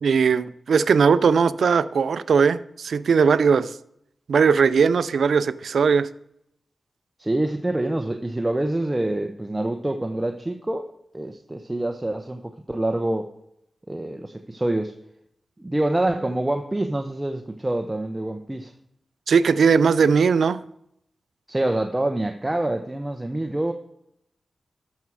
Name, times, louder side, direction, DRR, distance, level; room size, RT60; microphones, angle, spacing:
voice 1, 0.0-3.7 4.3-6.1 19.3-20.6, right 6 dB, 85° right, 0.4 m, -19 dB
voice 2, 7.2-10.9 11.1-13.3 13.9-14.9 15.6-18.7 21.5-23.7, right 1 dB, 20° right, 0.8 m, -26 dB
13.0 x 6.3 x 4.7 m
cardioid pair, 55°, 0 cm